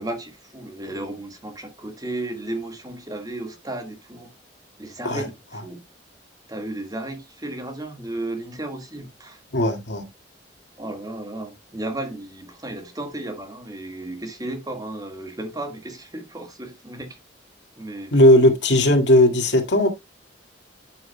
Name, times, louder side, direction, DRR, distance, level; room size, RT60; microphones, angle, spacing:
voice 1, 0.0-4.3 4.8-5.8 6.5-9.4 10.8-17.2 17.8-18.2, right 1 dB, 20° right, 1.7 m, -34 dB
voice 2, 9.5-10.1 18.1-19.9, left 1 dB, 85° left, 2.1 m, -17 dB
12.0 x 6.1 x 2.2 m
head